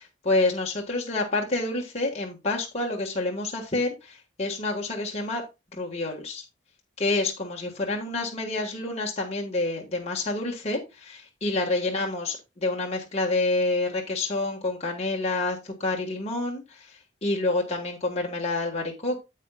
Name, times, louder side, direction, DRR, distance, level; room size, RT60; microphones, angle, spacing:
voice 1, 0.0-5.4 5.8-6.4 7.0-16.8 17.2-19.2, left 2 dB, 35° left, -1 dB, 1.5 m, -28 dB
9.0 x 7.7 x 2.3 m, 0.25 s
head